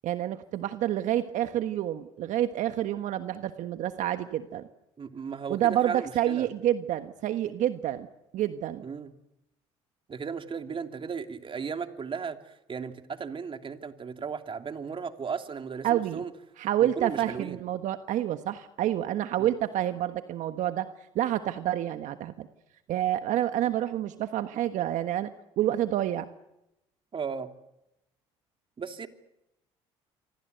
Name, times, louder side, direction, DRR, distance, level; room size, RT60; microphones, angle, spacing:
voice 1, 0.0-4.7 5.5-8.1 8.3-8.8 15.8-16.2 16.6-22.5 22.9-26.3, right 12 dB, 65° right, 9 dB, 1.4 m, -28 dB
voice 2, 5.0-6.5 8.8-9.1 10.1-16.3 16.8-17.6 19.4-19.5 27.1-27.5 28.8-29.1, right 6 dB, 40° right, 6 dB, 2.8 m, -36 dB
28.0 x 25.0 x 8.0 m, 0.89 s
hypercardioid pair, 65°, 14 cm